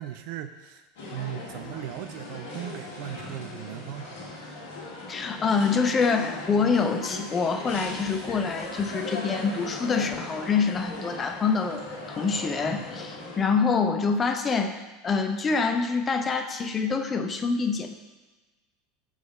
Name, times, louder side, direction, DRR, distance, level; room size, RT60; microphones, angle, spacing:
voice 1, 0.0-4.2, right 12 dB, 55° right, 9 dB, 0.5 m, -38 dB
sound 1, 1.0-13.4, left 2 dB, 60° left, 1.6 m, -38 dB
voice 2, 5.1-11.8 12.1-18.0, left 5 dB, 25° left, 6 dB, 0.7 m, -26 dB
6.0 x 4.9 x 5.0 m, 1.2 s
figure-of-eight pair, 75°, 0 cm